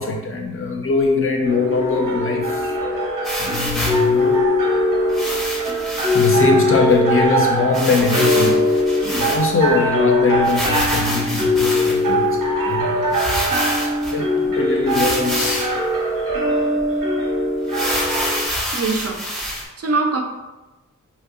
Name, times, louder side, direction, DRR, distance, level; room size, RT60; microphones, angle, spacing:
voice 1, 0.0-2.7 3.4-4.4 6.1-12.4 12.6-13.3 14.1-15.7, left 3 dB, 45° left, 1 dB, 0.4 m, -22 dB
sound 1, 1.4-18.4, left 1 dB, 90° right, 0.7 m, -20 dB
sound 2, 3.2-4.1 5.1-6.4 6.9-7.0 7.2-7.3 7.7-9.7 10.4-12.1 12.7-12.8 13.1-14.2 14.9-15.8 16.3-16.4 16.8-16.9 17.7-19.6, equal, ahead, 0.6 m, -26 dB
voice 2, 18.7-20.2, right 3 dB, 50° right, 2 dB, 0.4 m, -23 dB
2.7 x 2.1 x 3.6 m, 1.1 s
wide cardioid pair, 150°, 32 cm